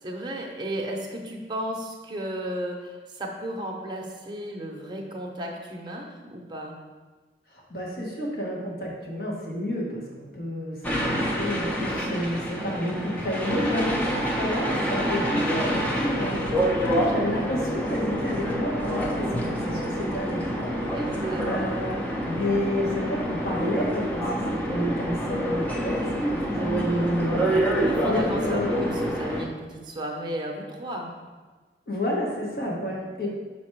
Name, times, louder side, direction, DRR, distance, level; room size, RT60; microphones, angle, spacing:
voice 1, 0.0-6.8 20.9-21.7 27.7-31.3 32.9-33.1, right 1 dB, 25° right, 0 dB, 0.8 m, -34 dB
voice 2, 7.7-27.5 28.0-28.9 31.9-33.3, left 1 dB, 55° left, -3 dB, 1.3 m, -30 dB
sound 1, 10.8-29.4, equal, 10° left, 0.6 m, -27 dB
5.8 x 4.1 x 4.5 m, 1.4 s
head